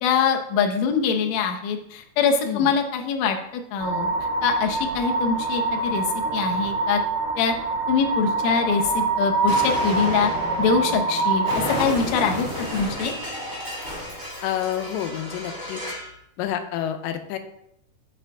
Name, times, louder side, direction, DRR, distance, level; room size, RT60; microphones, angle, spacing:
voice 1, 0.0-4.1 4.4-6.0 6.3-7.0 7.4-7.5 7.9-10.3 10.6-13.1, left 6 dB, 70° left, 3 dB, 1.8 m, -23 dB
sound 1, 3.8-11.9, right 3 dB, 80° right, 2.3 m, -25 dB
Explosion, 9.5-16.1, equal, 15° right, 0.8 m, -32 dB
voice 2, 14.4-15.8 16.4-17.4, left 11 dB, 85° left, 8 dB, 2.3 m, -28 dB
8.0 x 5.7 x 3.6 m, 0.78 s
omnidirectional pair, 3.8 m